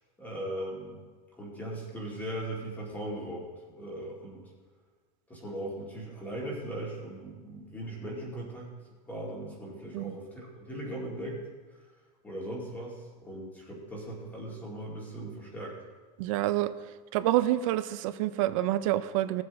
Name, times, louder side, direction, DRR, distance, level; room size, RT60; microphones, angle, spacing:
voice 1, 0.2-1.0 1.3-4.5 5.3-8.7 9.1-11.4 12.2-15.8, right 1 dB, 10° left, -3 dB, 2.2 m, -39 dB
voice 2, 16.2-16.7 17.1-19.4, right 14 dB, 50° right, 12 dB, 0.6 m, -27 dB
19.0 x 7.7 x 3.5 m, 1.4 s
supercardioid pair, 175°, 21 cm